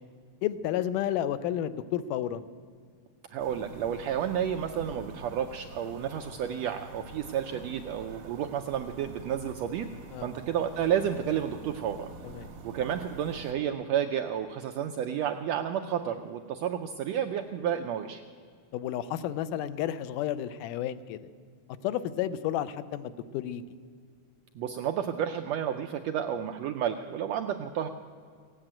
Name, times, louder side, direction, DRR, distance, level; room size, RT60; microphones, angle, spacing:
voice 1, 0.4-2.4 10.1-10.3 12.2-12.5 18.7-21.3 21.8-23.6, left 11 dB, 90° left, 13 dB, 2.2 m, -31 dB
voice 2, 3.3-9.9 10.2-12.1 12.6-18.2 24.5-27.9, right 9 dB, 80° right, 5 dB, 1.5 m, -31 dB
sound 1, 3.4-13.5, right 3 dB, 65° right, 2.6 m, -46 dB
16.5 x 9.2 x 8.7 m, 2.1 s
omnidirectional pair, 3.6 m